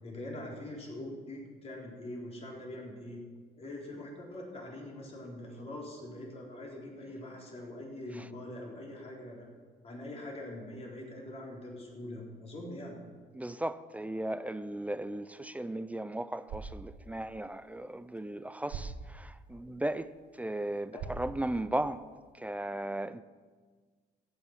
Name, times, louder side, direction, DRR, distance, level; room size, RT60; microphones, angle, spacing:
voice 1, 0.0-3.2 3.6-9.5 9.8-13.0 20.9-21.0, left 1 dB, 35° left, 4.1 m, -43 dB
voice 2, 13.3-20.1 20.4-22.1 22.3-23.2, right 1 dB, 10° right, 0.4 m, -36 dB
sound 1, 16.3-22.3, right 5 dB, 85° right, 1.6 m, -47 dB
14.0 x 9.6 x 5.9 m
cardioid pair, 110°, 17 cm